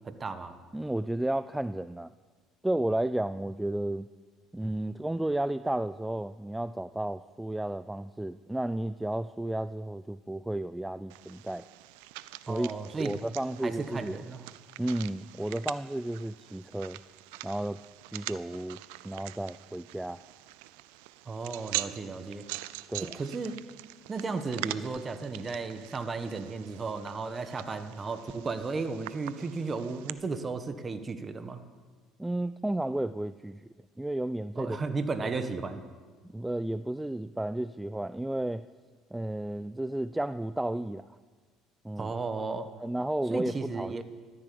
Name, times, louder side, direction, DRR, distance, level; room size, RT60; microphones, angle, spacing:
voice 1, 0.0-0.6 12.5-13.1 13.6-14.4 21.2-22.4 23.0-23.6 24.1-31.6 34.6-35.8 42.0-42.7 43.3-44.0, right 4 dB, 30° right, 9 dB, 1.4 m, -34 dB
voice 2, 0.7-2.1 2.6-4.1 4.5-11.7 12.5-12.7 13.0-14.2 14.8-17.0 17.4-17.8 18.1-20.2 22.9-23.1 32.2-33.7 34.0-34.8 36.2-38.7 39.1-41.1 41.8-42.1 42.8-44.0, right 1 dB, 5° right, 14 dB, 0.4 m, -32 dB
sound 1, 11.1-30.1, right 17 dB, 90° right, 0.5 m, -43 dB
14.5 x 13.5 x 7.0 m, 1.5 s
supercardioid pair, 95°, 0 cm